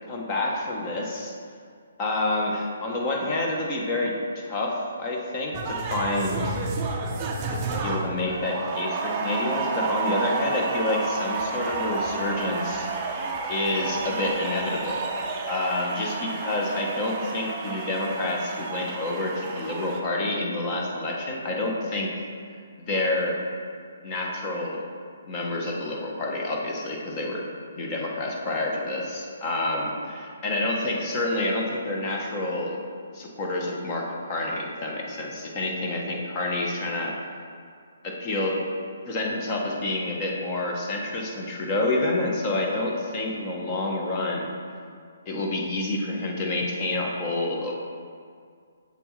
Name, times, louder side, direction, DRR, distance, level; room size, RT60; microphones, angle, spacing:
voice 1, 0.1-1.3 2.0-6.6 7.5-13.2 13.5-15.1 15.5-22.1 22.9-23.4 24.0-24.8 25.3-27.5 27.8-32.8 33.1-37.2 38.0-38.6 39.1-44.5 45.3-47.7, left 2 dB, 20° left, -1 dB, 0.8 m, -28 dB
sound 1, 5.5-20.0, right 4 dB, 20° right, 0.5 m, -31 dB
7.2 x 7.1 x 3.1 m, 2.2 s
hypercardioid pair, 170°, 0 cm